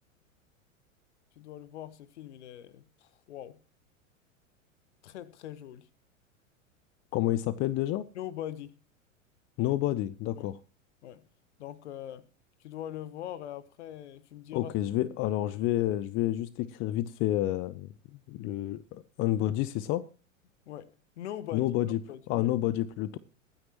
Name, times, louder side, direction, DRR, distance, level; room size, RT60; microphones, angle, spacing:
voice 1, 1.4-3.6 5.0-5.9 8.1-8.8 10.4-10.5 11.0-11.2 11.6-12.3 12.6-14.7 20.7-21.7 22.1-22.5, left 11 dB, 55° left, 1.3 m, -42 dB
voice 2, 7.1-8.1 9.6-10.6 14.5-17.9 18.3-20.0 21.5-22.0 22.3-23.2, left 14 dB, 30° left, 0.7 m, -29 dB
23.0 x 9.5 x 3.0 m
figure-of-eight pair, 90°, 40 cm